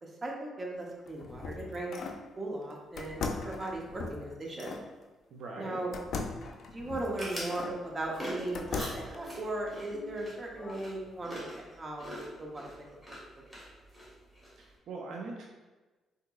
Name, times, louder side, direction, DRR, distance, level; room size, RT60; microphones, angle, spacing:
voice 1, 0.0-1.9 2.4-4.8 5.5-5.9 6.7-12.7 13.1-13.5, right 2 dB, 30° right, -1 dB, 0.7 m, -38 dB
sound 1, 0.9-2.3 3.0-4.9 5.9-7.8 8.2-9.2, left 4 dB, 65° left, 0.3 m, -39 dB
voice 2, 5.3-5.9 14.6-15.5, right 3 dB, 70° right, 0 dB, 0.4 m, -41 dB
sound 2, 6.9-14.7, equal, 5° right, 1.4 m, -45 dB
sound 3, 8.1-11.6, left 1 dB, 15° left, 0.9 m, -52 dB
3.8 x 2.7 x 2.3 m, 1.2 s
cardioid pair, 90°, 0 cm